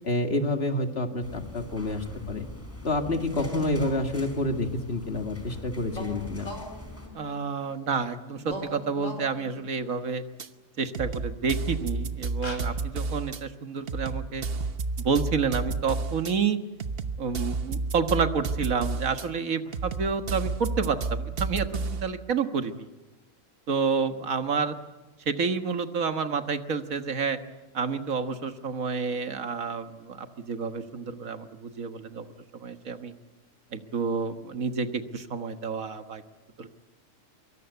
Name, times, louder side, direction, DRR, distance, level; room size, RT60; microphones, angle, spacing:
voice 1, 0.0-2.5 2.8-6.5, left 2 dB, 50° left, 5 dB, 2.2 m, -28 dB
sound 1, 1.2-7.1, left 1 dB, 10° left, 4.5 m, -43 dB
sound 2, 3.3-4.5 5.9-8.0 8.4-9.9 11.4-11.5 12.0-12.1 12.4-12.6, left 1 dB, 65° left, 5.0 m, -41 dB
voice 2, 7.1-10.2 10.8-14.5 15.0-16.6 17.2-22.9 23.7-24.8 25.3-27.4 27.7-33.1 33.7-36.2 36.6-36.7, right 5 dB, 80° right, 8 dB, 1.9 m, -29 dB
sound 3, 10.4-10.5 10.9-13.4 13.9-16.3 16.8-19.3 19.7-22.1, right 4 dB, 50° right, 1.2 m, -31 dB
25.0 x 23.0 x 8.2 m, 1.1 s
omnidirectional pair, 1.4 m